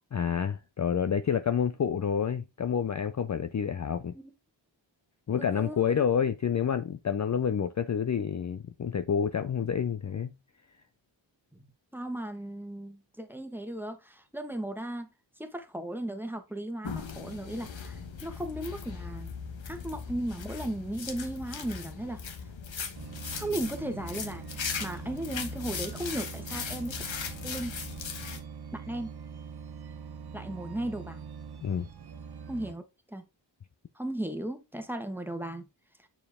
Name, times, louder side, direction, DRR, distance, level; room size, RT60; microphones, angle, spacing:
voice 1, 0.1-4.1 5.3-10.3 31.6-31.9, left 7 dB, 40° left, 0.5 m, -28 dB
voice 2, 5.4-5.8 11.5-11.6 11.9-15.1 15.4-19.3 19.7-22.5 23.3-27.0 27.4-27.7 28.7-29.1 30.3-31.3 32.5-32.8 33.1-33.2 33.9-35.7, right 1 dB, 5° right, 1.3 m, -36 dB
sound 1, 16.8-28.4, left 6 dB, 75° left, 1.2 m, -39 dB
sound 2, 22.9-32.7, right 6 dB, 55° right, 0.9 m, -43 dB
6.8 x 4.5 x 3.6 m
cardioid pair, 55°, 46 cm